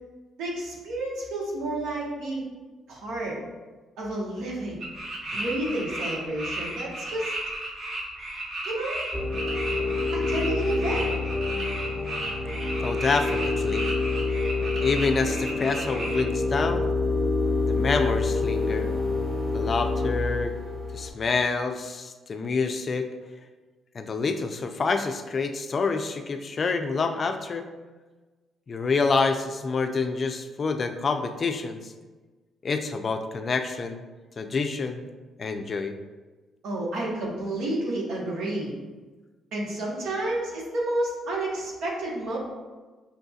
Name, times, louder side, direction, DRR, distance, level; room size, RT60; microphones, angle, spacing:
voice 1, 0.4-2.4 2.9-3.4 4.0-4.8 5.3-7.3 8.6-9.0 10.1-11.1 36.6-38.7 39.5-42.4, right 1 dB, 85° right, -3 dB, 1.0 m, -30 dB
sound 1, 4.8-16.2, right 1 dB, 65° right, 1.2 m, -34 dB
sound 2, 9.1-21.1, left 3 dB, 10° right, 1.0 m, -27 dB
voice 2, 12.8-13.9 14.6-16.9 17.7-18.9 19.5-20.6 20.9-23.1 23.9-27.7 28.7-31.9 32.6-34.1 34.4-35.1 35.4-36.0, left 4 dB, 45° left, 7 dB, 0.3 m, -27 dB
5.6 x 2.6 x 2.4 m, 1.3 s
cardioid pair, 90°, 0 cm